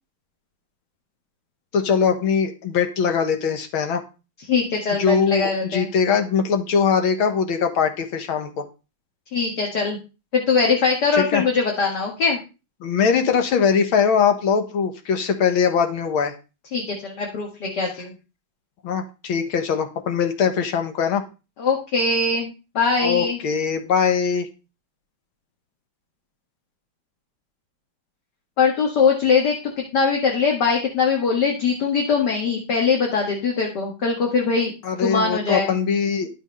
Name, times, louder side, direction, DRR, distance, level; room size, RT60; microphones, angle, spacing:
voice 1, 1.7-4.0 5.0-8.6 11.1-11.4 12.8-16.3 18.8-21.2 23.0-24.5 34.8-36.4, left 6 dB, 85° left, 7 dB, 2.2 m, -21 dB
voice 2, 4.5-5.9 9.3-10.0 10.3-12.4 16.7-18.1 21.6-23.4 28.6-34.7 35.0-35.8, left 5 dB, 55° left, -1 dB, 2.4 m, -21 dB
11.5 x 6.3 x 5.4 m, 0.31 s
omnidirectional pair, 2.2 m